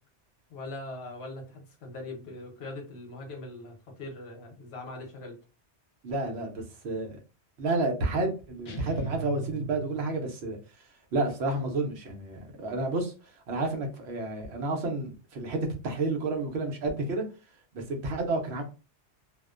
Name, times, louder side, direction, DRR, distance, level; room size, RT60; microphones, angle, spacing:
voice 1, 0.5-5.4, left 2 dB, 70° left, 2 dB, 1.0 m, -41 dB
voice 2, 6.0-7.2 7.6-10.6 11.1-13.1 13.5-17.2 17.7-18.6, right 2 dB, 70° right, 3 dB, 0.9 m, -30 dB
sound 1, 8.6-10.4, right 6 dB, 50° left, 0.5 m, -38 dB
2.4 x 2.1 x 2.4 m, 0.32 s
omnidirectional pair, 1.2 m